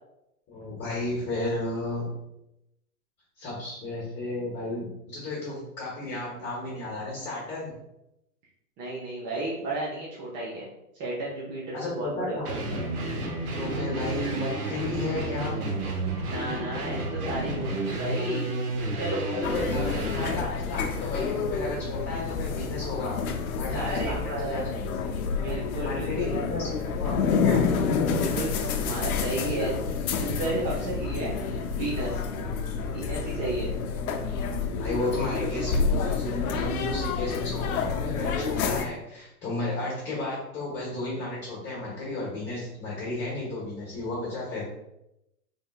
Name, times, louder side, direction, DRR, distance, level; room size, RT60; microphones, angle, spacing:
voice 1, 0.5-2.1 3.4-7.7 11.7-12.8 13.5-15.5 19.3-23.2 23.6-25.2 25.8-27.6 34.8-44.7, left 2 dB, 25° left, -6 dB, 1.1 m, -33 dB
voice 2, 8.8-10.7 11.0-12.6 16.3-18.5 18.9-19.2 23.7-24.6 25.4-26.4 28.1-29.9 30.1-32.2 32.9-33.7, right 2 dB, 25° right, -6 dB, 0.6 m, -33 dB
sound 1, 12.4-20.4, right 2 dB, 75° right, 1.2 m, -31 dB
sound 2, 19.4-38.9, left 5 dB, 70° left, 0.6 m, -29 dB
3.5 x 3.4 x 2.3 m, 0.87 s
hypercardioid pair, 130°, 45 cm